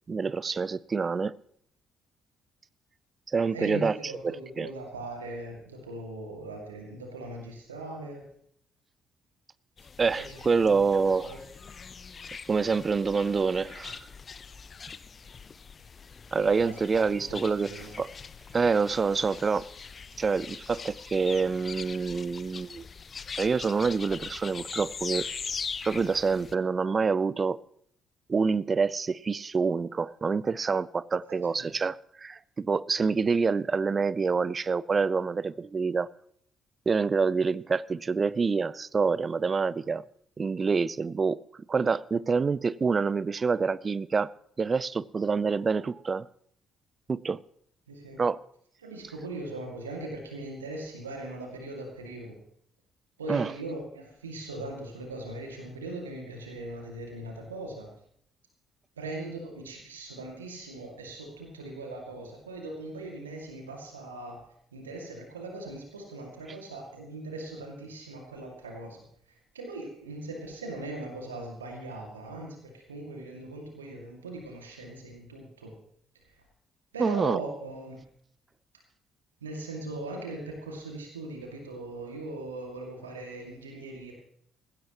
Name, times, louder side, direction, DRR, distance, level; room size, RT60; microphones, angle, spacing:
voice 1, 0.1-1.3 3.3-3.9 4.2-4.7 10.0-11.3 12.5-14.1 16.3-17.7 18.0-18.1 18.5-19.7 20.2-22.8 23.4-25.3 25.8-27.6 28.3-36.1 36.9-40.0 40.4-41.4 41.7-44.3 44.6-46.3 47.1-47.4 48.2-48.4 53.3-53.5 77.0-77.4, right 5 dB, 35° right, 20 dB, 0.6 m, -27 dB
voice 2, 3.5-8.2 10.2-10.9 11.2-11.4 16.6-16.8 17.1-17.9 31.3-31.7 47.9-48.2 48.8-52.4 53.2-57.9 59.0-64.4 64.7-75.7 76.2-76.3 76.9-78.0 79.4-84.1, right 2 dB, 85° right, 1 dB, 2.2 m, -40 dB
sound 1, 9.8-26.6, left 5 dB, 40° left, 0.7 m, -42 dB
19.0 x 16.0 x 3.0 m, 0.66 s
figure-of-eight pair, 45°, 0 cm